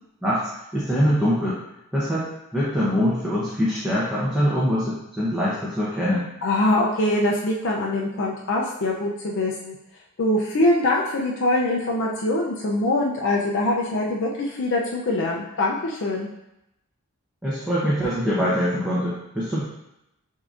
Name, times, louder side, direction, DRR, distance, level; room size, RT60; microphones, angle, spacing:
voice 1, 0.2-1.6 1.9-2.3 2.5-6.3 17.4-19.6, equal, 5° right, -9 dB, 0.7 m, -23 dB
voice 2, 6.4-9.8 10.2-16.3, left 1 dB, 55° left, -2 dB, 0.5 m, -23 dB
6.6 x 2.7 x 2.5 m, 0.86 s
head